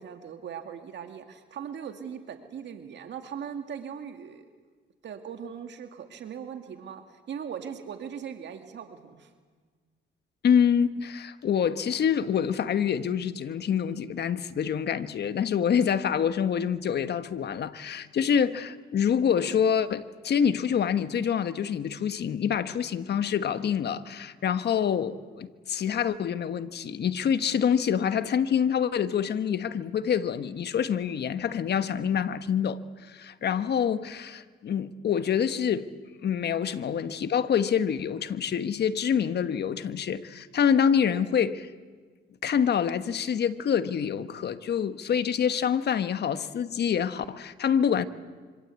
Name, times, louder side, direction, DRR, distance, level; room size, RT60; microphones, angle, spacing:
voice 1, 0.0-4.5 5.0-9.3, right 7 dB, 65° right, 2.1 m, -39 dB
voice 2, 10.4-35.9 36.2-41.7 42.4-48.0, left 8 dB, 55° left, 1.3 m, -26 dB
26.0 x 25.5 x 8.4 m
cardioid pair, 90°, 20 cm